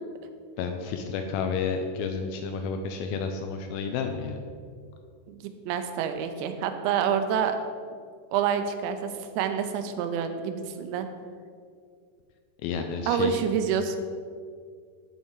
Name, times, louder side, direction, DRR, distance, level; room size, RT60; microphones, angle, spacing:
voice 1, 0.6-4.4 12.6-13.4, left 5 dB, 85° left, 5 dB, 2.1 m, -31 dB
voice 2, 5.7-7.6 8.3-9.1 9.4-11.1 13.1-14.0, right 8 dB, 90° right, 8 dB, 2.9 m, -27 dB
12.5 x 5.7 x 4.6 m, 2.2 s
omnidirectional pair, 4.9 m